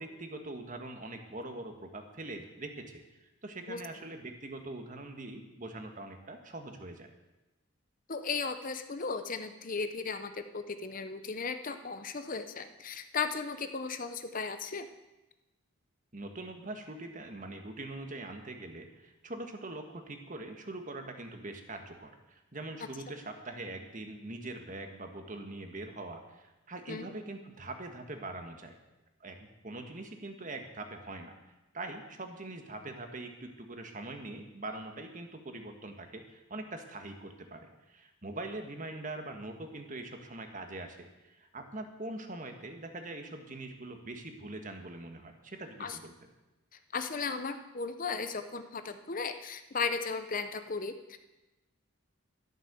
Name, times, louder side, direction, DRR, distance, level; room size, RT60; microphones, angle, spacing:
voice 1, 0.0-7.1 16.1-28.8 29.2-29.4 29.6-31.3 31.7-46.1, right 2 dB, 40° right, 5 dB, 1.7 m, -43 dB
voice 2, 8.1-14.9 26.9-27.1 45.8-46.0 46.9-51.2, left 4 dB, 40° left, 9 dB, 0.8 m, -36 dB
12.5 x 12.0 x 6.9 m, 1.0 s
head